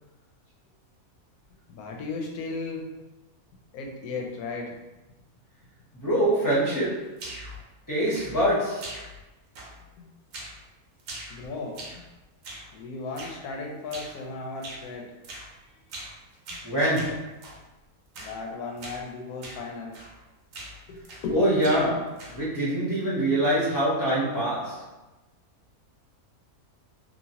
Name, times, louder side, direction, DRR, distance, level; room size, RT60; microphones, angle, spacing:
voice 1, 1.7-2.9 3.7-4.8 10.0-10.1 11.3-11.8 12.7-15.1 18.2-20.0 20.9-21.4, left 3 dB, 85° left, 1 dB, 1.1 m, -35 dB
voice 2, 5.9-7.2 7.9-9.0 16.6-17.4 21.3-24.9, right 1 dB, 15° left, -8 dB, 0.7 m, -25 dB
sound 1, 7.2-7.6 8.1-8.5 8.8-9.3 9.6-9.9 10.3-10.6 11.0-12.1 12.4-12.7 13.2-13.4 13.9-14.2 14.6-14.9 15.2-15.5 15.9-16.2 16.5-17.6 18.1-18.4 18.8-19.0 19.4-19.6 19.9-20.2 20.5-21.3 21.6-22.5, right 1 dB, 65° right, 1.0 m, -42 dB
3.0 x 2.4 x 2.8 m, 1.0 s
omnidirectional pair, 1.6 m